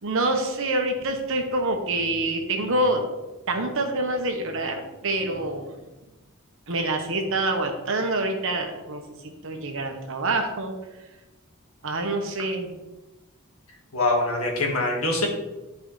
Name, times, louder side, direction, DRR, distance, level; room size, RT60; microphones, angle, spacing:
voice 1, 0.0-3.1 3.5-5.8 6.7-11.0 11.8-12.7, right 2 dB, 65° right, 4 dB, 1.1 m, -26 dB
voice 2, 13.9-15.3, left 2 dB, 85° left, 0 dB, 1.8 m, -23 dB
11.5 x 4.7 x 3.2 m, 1.1 s
head